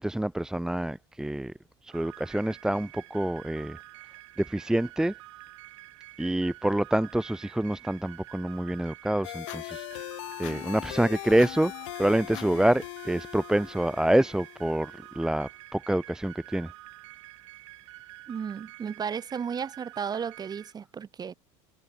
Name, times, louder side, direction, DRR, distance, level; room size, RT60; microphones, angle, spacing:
voice 1, 0.0-1.5 1.8-3.8 4.4-5.1 6.2-9.9 10.4-11.7 12.0-16.7, right 1 dB, 5° right, 0.9 m, -27 dB
sound 1, 1.9-20.7, right 18 dB, 90° right, 2.5 m, -48 dB
sound 2, 9.2-15.2, left 22 dB, 80° left, 1.6 m, -40 dB
voice 2, 18.3-21.3, right 7 dB, 25° right, 2.2 m, -34 dB
supercardioid pair, 115°, 15 cm